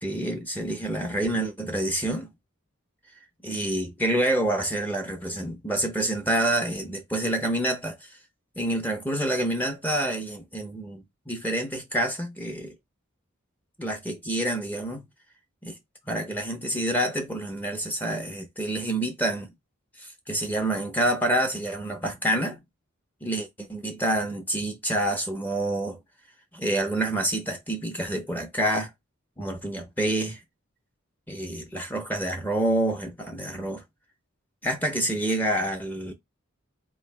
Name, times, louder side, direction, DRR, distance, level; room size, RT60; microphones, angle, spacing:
voice 1, 0.0-2.3 3.4-8.2 8.6-12.7 13.8-15.0 15.6-15.8 16.1-19.5 20.0-22.6 23.2-26.0 26.5-28.9 29.4-30.4 31.3-33.8 34.6-36.1, right 1 dB, 10° left, 0.7 m, -27 dB
4.1 x 3.1 x 3.2 m
head